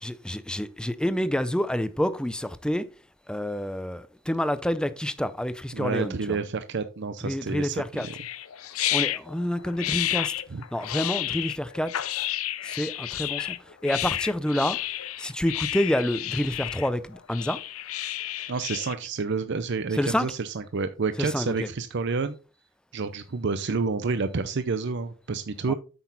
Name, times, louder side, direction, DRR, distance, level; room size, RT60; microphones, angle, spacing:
voice 1, 0.0-2.9 3.3-6.4 7.2-8.1 8.9-10.3 10.7-11.9 12.6-13.6 13.8-14.8 15.2-17.6 19.9-20.3 21.2-21.5 25.7-25.8, left 1 dB, 5° left, 0.5 m, -28 dB
voice 2, 5.7-8.1 10.5-10.6 18.5-22.4 22.9-25.7, right 4 dB, 55° right, 0.5 m, -29 dB
sound 1, 8.0-18.9, left 13 dB, 90° left, 0.6 m, -31 dB
8.6 x 6.0 x 4.0 m
head